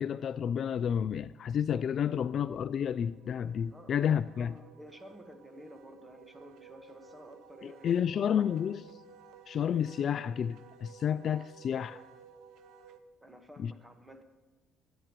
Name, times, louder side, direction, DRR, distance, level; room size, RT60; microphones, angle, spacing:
voice 1, 0.0-4.5 7.6-8.8 9.5-12.0 13.6-13.7, left 8 dB, 50° left, 0.3 m, -30 dB
Wind instrument woodwind instrument, 2.6-13.0, right 6 dB, 80° right, 0.8 m, -55 dB
voice 2, 4.4-8.4 13.2-14.2, equal, 10° right, 1.5 m, -52 dB
27.0 x 10.0 x 3.1 m
cardioid pair, 100°, 0 cm